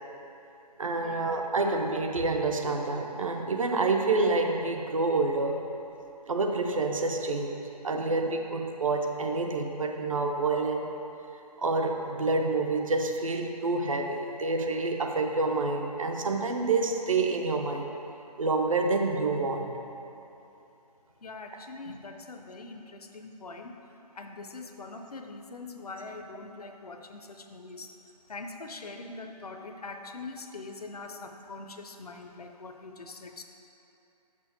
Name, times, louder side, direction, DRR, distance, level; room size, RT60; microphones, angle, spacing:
voice 1, 0.8-5.6 6.3-7.6 7.8-10.9 11.6-17.9 18.4-19.8 21.9-22.0, right 3 dB, 55° right, 3 dB, 0.7 m, -28 dB
voice 2, 21.2-23.8 24.1-27.9 28.3-33.4, left 3 dB, 65° left, 5 dB, 0.6 m, -43 dB
6.1 x 5.8 x 4.5 m, 2.9 s
figure-of-eight pair, 150°, 21 cm